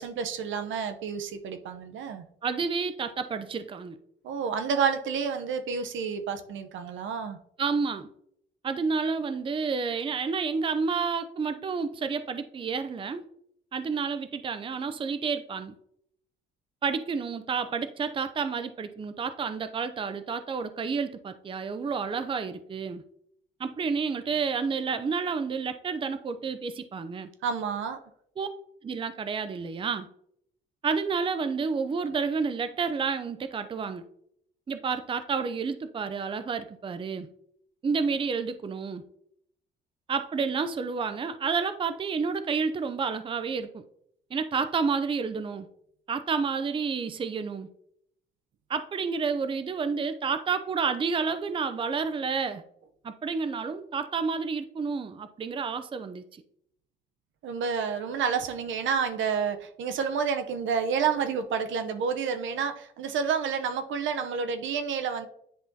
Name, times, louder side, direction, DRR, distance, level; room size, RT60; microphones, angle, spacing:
voice 1, 0.0-2.2 4.2-7.4 27.4-28.0 57.4-65.3, right 6 dB, 75° right, 8 dB, 0.7 m, -29 dB
voice 2, 2.4-4.0 7.6-8.1 8.6-13.2 13.7-15.7 16.8-23.0 23.6-27.3 28.4-28.5 28.8-30.1 30.8-34.0 34.7-37.3 37.8-39.0 40.1-43.8 44.3-45.7 46.1-47.7 48.7-52.6 53.0-56.4, right 5 dB, 25° right, 11 dB, 0.5 m, -30 dB
10.0 x 3.5 x 2.7 m, 0.70 s
cardioid pair, 90°, 20 cm